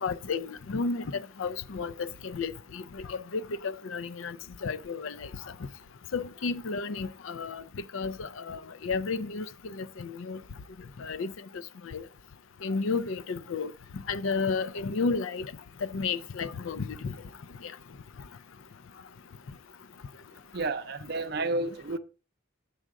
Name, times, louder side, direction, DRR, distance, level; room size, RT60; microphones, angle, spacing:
voice 1, 0.0-4.4 4.6-5.3 6.1-7.6 7.9-10.4 11.0-12.0 12.6-13.7 14.1-15.5 15.8-17.1 17.6-17.7, left 4 dB, 75° left, 0.5 m, -32 dB
voice 2, 20.5-22.0, right 2 dB, 50° right, 0.6 m, -31 dB
7.8 x 6.3 x 3.6 m
head